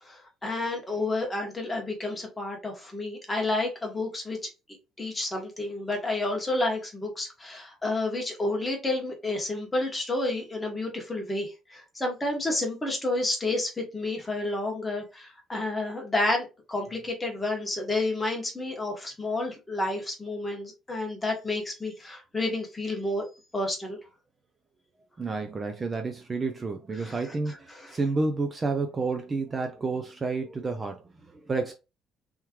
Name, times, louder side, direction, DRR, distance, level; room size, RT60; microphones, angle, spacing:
voice 1, 0.0-4.5 5.0-23.2 23.5-24.0 27.0-27.1, left 2 dB, 15° left, 1.3 m, -30 dB
voice 2, 25.2-31.7, right 3 dB, 20° right, 0.4 m, -30 dB
3.6 x 3.1 x 2.9 m
cardioid pair, 150°, 0 cm